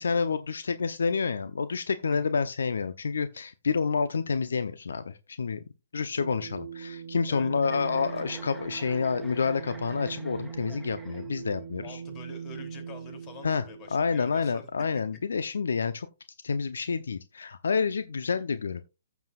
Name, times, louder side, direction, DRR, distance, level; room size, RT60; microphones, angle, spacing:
voice 1, 0.0-5.6 5.9-12.0 13.4-13.6 13.9-16.1 16.4-18.8, left 5 dB, 70° left, 0.8 m, -28 dB
sound 1, 6.2-14.1, right 7 dB, 50° right, 1.0 m, -41 dB
Chuckle chortle, 7.6-11.6, right 1 dB, 5° left, 2.2 m, -49 dB
voice 2, 11.8-14.7 14.9-15.0, left 5 dB, 30° left, 3.1 m, -47 dB
15.0 x 7.1 x 2.5 m
figure-of-eight pair, 130°, 0 cm